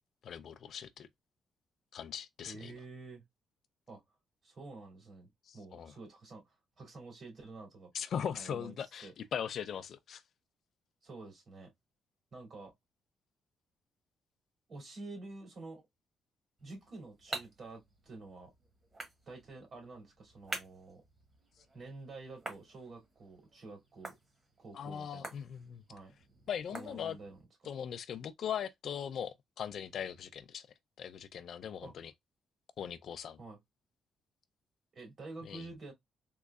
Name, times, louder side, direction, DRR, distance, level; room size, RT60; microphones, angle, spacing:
voice 1, 0.2-1.1 1.9-2.7 5.5-5.9 7.9-10.2 24.7-25.8 26.5-27.2 27.6-30.7 31.0-32.1 32.8-33.4 35.5-35.6, left 8 dB, 60° left, 0.4 m, -40 dB
voice 2, 2.4-3.2 3.9-4.0 4.4-7.9 8.3-9.1 11.0-11.7 12.3-12.7 14.7-15.8 16.6-18.5 19.3-21.0 21.7-24.1 24.6-25.3 25.9-26.2 26.7-27.4 31.8-31.9 33.4-33.6 34.9-35.9, right 3 dB, 50° right, 2.3 m, -49 dB
sound 1, 16.6-27.5, right 2 dB, 25° right, 1.2 m, -49 dB
3.7 x 3.1 x 2.2 m
cardioid pair, 130°, 0 cm